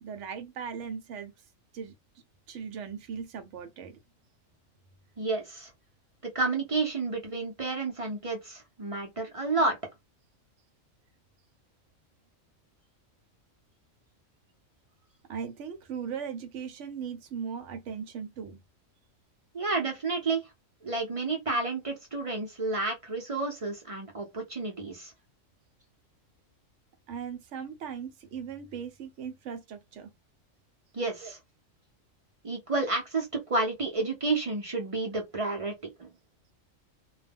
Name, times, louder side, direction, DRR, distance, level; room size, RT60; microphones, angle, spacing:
voice 1, 0.0-1.3 1.7-1.9 2.5-3.9 15.3-18.6 27.1-30.1 31.2-31.3, right 7 dB, 70° right, 0.9 m, -38 dB
voice 2, 5.2-5.7 6.2-9.8 19.5-20.5 20.8-25.1 30.9-31.4 32.4-36.1, right 3 dB, 45° right, 0.4 m, -30 dB
2.2 x 2.1 x 3.3 m
omnidirectional pair, 1.4 m